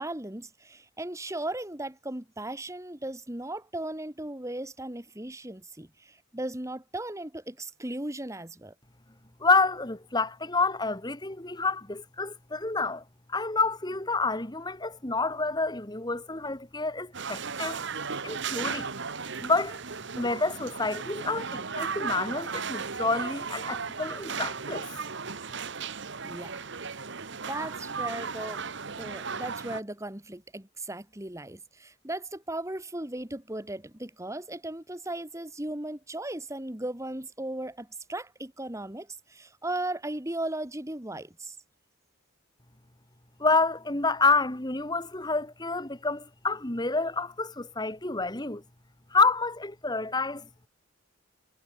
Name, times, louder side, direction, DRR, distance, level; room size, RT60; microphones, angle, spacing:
voice 1, 0.0-8.7 26.2-26.7 27.3-41.6, right 1 dB, 15° right, 1.8 m, -37 dB
voice 2, 9.4-13.0 13.3-17.8 18.2-18.9 19.4-19.8 20.2-24.9 43.4-48.6 49.1-50.5, left 3 dB, 20° left, 1.9 m, -28 dB
sound 1, 17.1-29.8, right 5 dB, 60° right, 1.5 m, -35 dB
head